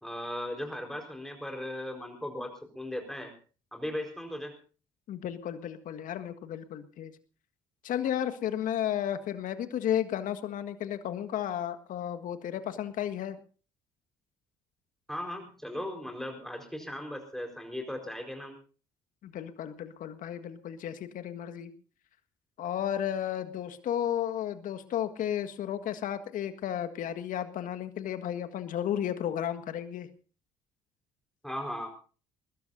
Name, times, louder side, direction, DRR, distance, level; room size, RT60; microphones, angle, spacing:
voice 1, 0.0-3.3 3.7-4.6 15.1-18.5 31.4-31.9, left 1 dB, ahead, 3 dB, 4.6 m, -37 dB
voice 2, 5.1-7.1 7.8-13.4 19.2-21.7 22.6-30.1, left 10 dB, 50° left, 8 dB, 1.7 m, -33 dB
22.5 x 20.5 x 2.7 m, 0.38 s
figure-of-eight pair, 55°, 17 cm